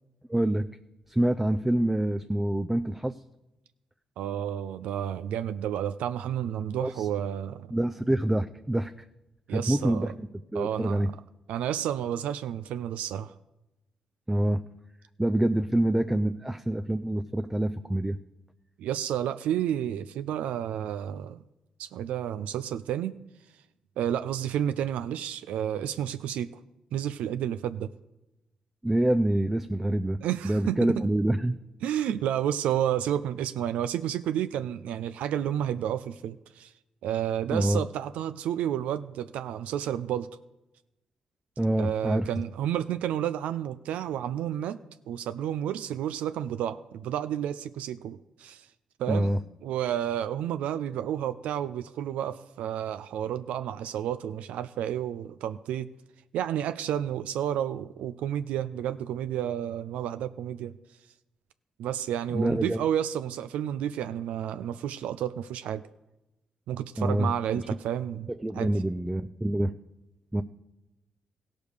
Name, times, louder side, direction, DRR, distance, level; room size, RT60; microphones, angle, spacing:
voice 1, 0.3-0.7 1.1-3.2 6.8-7.1 7.7-8.9 9.5-11.1 14.3-14.6 15.2-18.2 28.8-30.2 30.4-31.6 37.5-37.8 41.6-42.3 49.1-49.4 62.3-62.8 67.0-67.3 68.4-69.7 70.3-70.4, right 1 dB, 10° right, 8 dB, 0.4 m, -26 dB
voice 2, 4.2-7.7 9.5-10.1 10.5-11.1 11.5-13.3 18.8-21.4 21.8-23.1 24.0-26.5 26.9-27.9 30.2-31.0 31.8-36.7 37.0-40.3 41.8-44.8 45.1-48.7 49.0-49.3 49.6-55.9 56.3-60.7 61.8-65.8 66.7-68.7, right 10 dB, 85° right, 12 dB, 0.3 m, -31 dB
15.5 x 5.2 x 6.5 m, 0.95 s
supercardioid pair, 55°, 2 cm